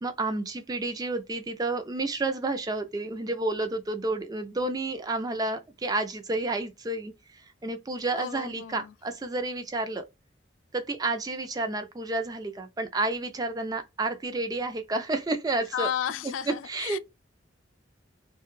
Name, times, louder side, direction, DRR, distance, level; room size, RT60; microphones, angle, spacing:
voice 1, 0.0-10.0 10.7-15.9 16.2-17.0, right 2 dB, 20° right, 0.4 m, -30 dB
voice 2, 8.1-8.9 15.7-17.0, left 9 dB, 90° left, 0.3 m, -33 dB
2.4 x 2.2 x 3.0 m
head